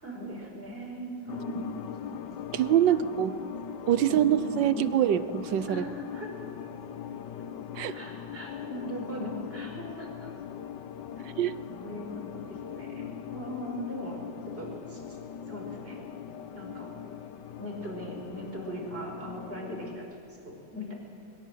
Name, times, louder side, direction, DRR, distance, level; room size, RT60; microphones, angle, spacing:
voice 1, 0.0-2.1 2.9-3.5 4.0-4.8 5.7-6.3 7.9-10.3 11.7-15.0 15.5-16.1 16.5-17.0 17.6-20.9, equal, 25° right, 0 dB, 5.5 m, -40 dB
sound 1, 1.3-20.0, left 8 dB, 65° left, 1.4 m, -41 dB
voice 2, 2.5-3.4 3.9-5.8 7.8-7.9 11.2-11.5, right 11 dB, 65° right, 14 dB, 1.4 m, -25 dB
23.0 x 22.0 x 7.8 m, 2.1 s
omnidirectional pair, 2.3 m